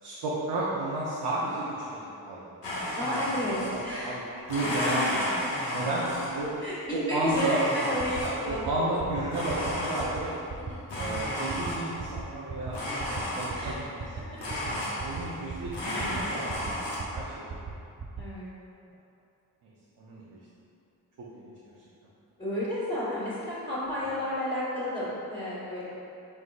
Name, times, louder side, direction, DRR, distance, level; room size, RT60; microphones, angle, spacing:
voice 1, 0.0-2.5 3.7-4.2 4.5-5.3 5.7-6.5 6.9-7.6 8.2-10.3 10.9-16.9 17.1-17.4 19.6-19.7 20.0-20.4 21.3-21.5, right 2 dB, 75° right, -7 dB, 0.7 m, -33 dB
Domestic sounds home sounds, 2.6-4.0 4.4-6.6 7.3-8.6 9.3-10.4 10.9-12.1 12.7-13.8 14.4-15.5 15.7-17.0, left 1 dB, 85° left, 1.0 m, -33 dB
voice 2, 3.0-4.1 6.6-6.8 7.1-8.8 10.7-10.8 13.5-13.8 18.2-18.5 22.4-25.9, left 1 dB, 15° left, -13 dB, 1.4 m, -31 dB
sound 1, 8.0-8.2 8.5-8.7 9.0-9.2 9.5-9.7 10.0-10.2 10.5-10.7 11.0-11.2 11.5-11.7 12.0-12.2 12.5-12.7 13.0-13.2 13.5-13.7 14.0-14.2 14.5-14.7 15.0-15.2 15.5-15.7 16.0-16.2 16.5-16.7 17.0-17.2 17.5-17.7 18.0-18.2, right 6 dB, 30° right, 0.4 m, -37 dB
4.3 x 3.7 x 2.5 m, 2.7 s
supercardioid pair, 45°, 41 cm